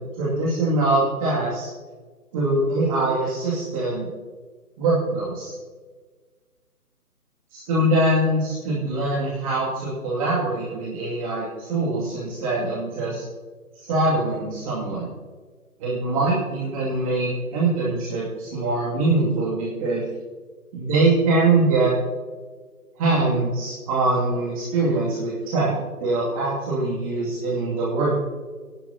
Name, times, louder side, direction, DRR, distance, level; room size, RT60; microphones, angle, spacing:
voice 1, 0.0-1.7 2.3-4.1 4.8-5.5 7.5-13.2 13.8-15.1 15.8-20.0 20.7-21.9 23.0-25.7 26.0-28.2, right 2 dB, 25° right, -6 dB, 2.4 m, -23 dB
18.0 x 11.0 x 2.8 m, 1.4 s
figure-of-eight pair, 150°, 46 cm